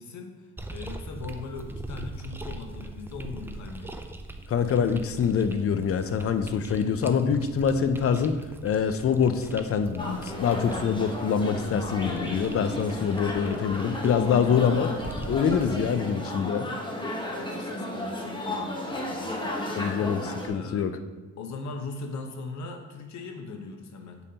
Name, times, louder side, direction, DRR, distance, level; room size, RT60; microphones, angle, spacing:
voice 1, 0.0-4.0 17.2-20.9 21.4-24.2, left 3 dB, 65° left, 4 dB, 1.0 m, -40 dB
sound 1, 0.6-15.8, right 2 dB, 5° right, 0.4 m, -42 dB
voice 2, 4.5-14.9 15.3-16.7 19.8-20.9, left 7 dB, 50° left, 10 dB, 0.6 m, -25 dB
sound 2, 10.0-20.5, left 1 dB, 15° left, 1.1 m, -33 dB
8.1 x 5.4 x 2.9 m, 1.2 s
cardioid pair, 90°, 30 cm